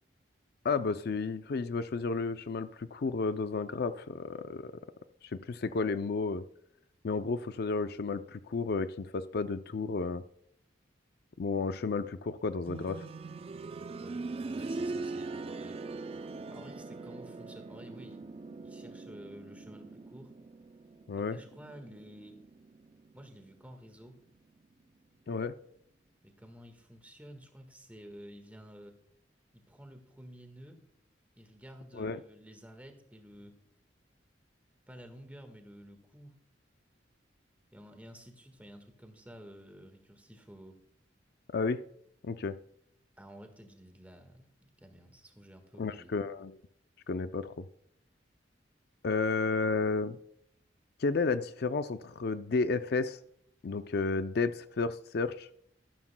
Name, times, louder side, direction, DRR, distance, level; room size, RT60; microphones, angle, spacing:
voice 1, 0.6-4.7 5.5-6.4 7.0-10.2 11.4-13.1 21.1-21.4 25.3-25.5 32.0-32.2 41.5-41.8 42.2-42.5 45.8-46.5 47.1-47.6 49.0-50.2 51.0-53.2 53.6-55.5, left 4 dB, 55° left, 11 dB, 0.4 m, -32 dB
sound 1, 12.7-23.4 23.7-23.8 24.7-24.8, right 3 dB, 30° right, 0.3 m, -42 dB
voice 2, 14.0-15.8 16.5-18.2 18.6-20.3 21.2-22.4 23.1-24.2 26.2-29.0 29.5-30.8 31.3-33.5 34.9-36.4 37.7-40.8 43.2-46.1, equal, 10° right, 6 dB, 1.4 m, -51 dB
13.5 x 12.0 x 2.2 m, 0.68 s
head